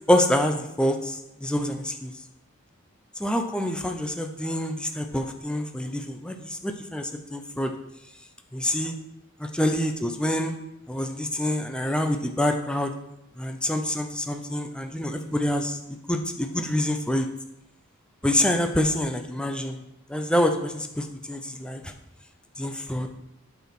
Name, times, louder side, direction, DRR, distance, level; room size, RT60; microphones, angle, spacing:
voice 1, 0.1-2.1 3.2-7.7 8.5-8.9 9.4-10.6 10.9-12.9 13.4-17.3 18.2-19.8 20.1-21.9 22.6-23.1, left 1 dB, 5° left, 5 dB, 0.6 m, -26 dB
8.4 x 4.8 x 6.0 m, 0.85 s
head